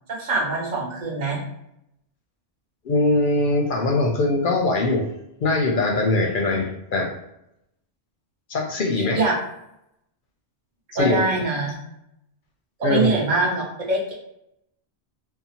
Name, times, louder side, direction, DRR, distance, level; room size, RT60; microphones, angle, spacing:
voice 1, 0.1-1.4 9.1-9.3 10.9-11.8 12.8-14.1, right 3 dB, 50° right, -3 dB, 0.8 m, -23 dB
voice 2, 2.8-5.1 5.4-7.1 8.5-9.2 11.0-11.2 12.8-13.2, left 2 dB, 60° left, 1 dB, 0.6 m, -21 dB
2.8 x 2.0 x 2.8 m, 0.82 s
omnidirectional pair, 1.1 m